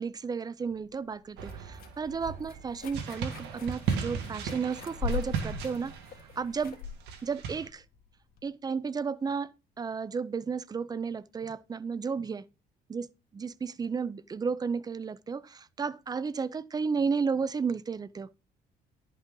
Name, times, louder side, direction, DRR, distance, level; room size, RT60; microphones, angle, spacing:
voice 1, 0.0-6.0 6.4-6.8 7.2-7.8 8.4-12.4 12.9-13.1 13.3-18.3, right 5 dB, 25° right, 0.5 m, -33 dB
sound 1, 0.7-8.4, left 6 dB, 60° left, 1.8 m, -41 dB
sound 2, 1.4-7.7, right 6 dB, 85° right, 1.8 m, -37 dB
11.0 x 5.4 x 3.8 m
cardioid pair, 110°, 17 cm